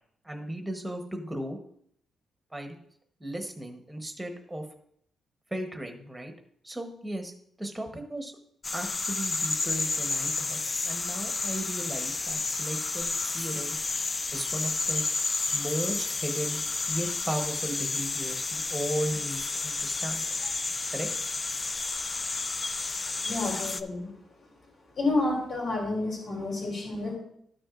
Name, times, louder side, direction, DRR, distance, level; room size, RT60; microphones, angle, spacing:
voice 1, 0.2-1.6 2.5-2.8 3.2-4.6 5.5-6.3 6.6-7.3 7.6-8.3 8.7-13.8 14.3-15.0 15.5-16.6 16.9-20.3 20.9-21.1, right 1 dB, 5° right, 4 dB, 1.0 m, -35 dB
sound 1, 8.6-23.8, left 3 dB, 25° left, 0.3 m, -31 dB
voice 2, 23.2-24.1 24.9-27.2, left 2 dB, 45° left, -3 dB, 3.1 m, -30 dB
13.0 x 6.0 x 2.5 m, 0.68 s
wide cardioid pair, 170°, 0 cm